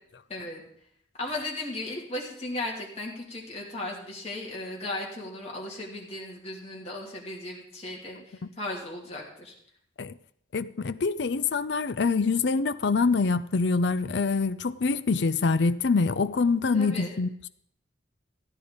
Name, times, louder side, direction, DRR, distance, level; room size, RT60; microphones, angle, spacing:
voice 1, 0.3-0.6 1.2-9.5 16.7-17.1, left 2 dB, 35° left, 2.8 m, -36 dB
voice 2, 10.5-17.3, left 4 dB, 65° left, 0.5 m, -25 dB
14.5 x 9.8 x 5.1 m
head